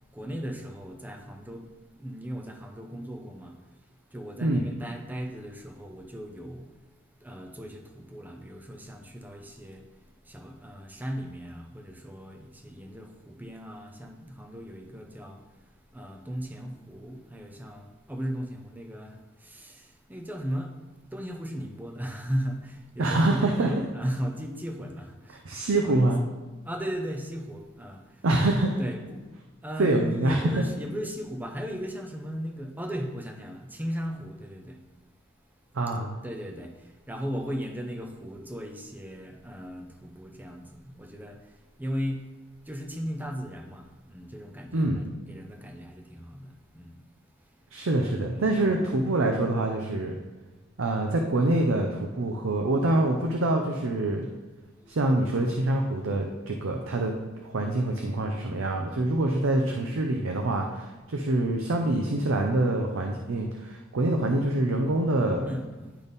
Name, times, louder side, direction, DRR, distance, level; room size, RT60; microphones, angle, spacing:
voice 1, 0.1-6.9 7.2-20.8 21.0-25.4 25.8-26.1 26.6-28.3 28.8-29.3 29.6-34.8 36.2-42.3 42.6-47.1 47.4-47.7 48.3-48.9 54.8-55.0 65.4-66.0, equal, 10° right, 4 dB, 0.6 m, -37 dB
voice 2, 23.0-23.7 25.4-26.2 28.2-28.8 29.8-30.5 35.7-36.1 44.7-45.0 47.7-50.2 50.8-54.3 54.9-57.1 57.4-65.5, right 2 dB, 75° right, 2 dB, 0.6 m, -25 dB
10.0 x 3.5 x 4.0 m, 1.2 s
head